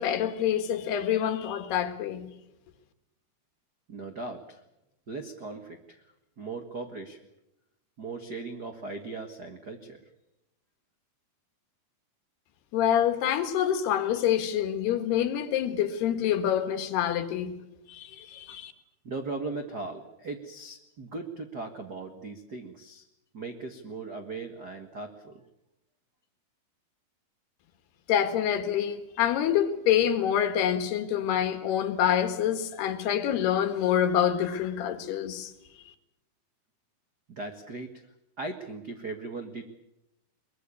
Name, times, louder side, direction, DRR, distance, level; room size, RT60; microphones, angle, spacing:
voice 1, 0.0-2.3 12.7-17.6 17.9-18.7 28.1-35.5, left 10 dB, 80° left, 3.7 m, -26 dB
voice 2, 3.9-4.6 5.1-6.1 6.4-7.2 8.0-10.0 19.0-23.0 23.3-25.4 37.3-39.6, right 3 dB, 55° right, 1.0 m, -38 dB
22.5 x 21.5 x 8.4 m
omnidirectional pair, 4.7 m